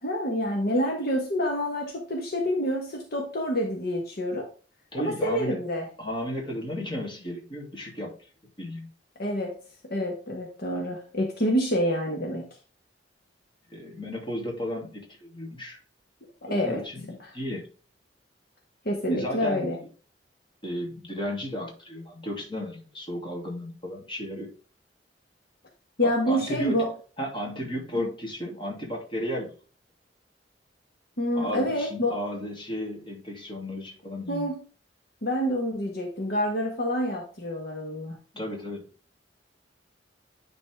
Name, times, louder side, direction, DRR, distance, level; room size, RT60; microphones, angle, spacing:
voice 1, 0.0-4.5 5.0-5.9 9.2-9.6 9.8-12.5 16.4-16.8 18.8-19.8 26.0-26.9 27.9-28.1 31.2-32.2 34.3-34.6 35.2-38.2, equal, 60° left, 1.5 m, -27 dB
voice 2, 4.9-5.6 6.0-8.1 8.6-8.9 13.7-15.8 16.4-17.6 19.1-19.7 20.6-24.5 26.0-26.8 27.2-29.5 31.3-34.5 38.3-38.8, left 1 dB, 30° left, 2.9 m, -34 dB
10.0 x 4.2 x 3.5 m
head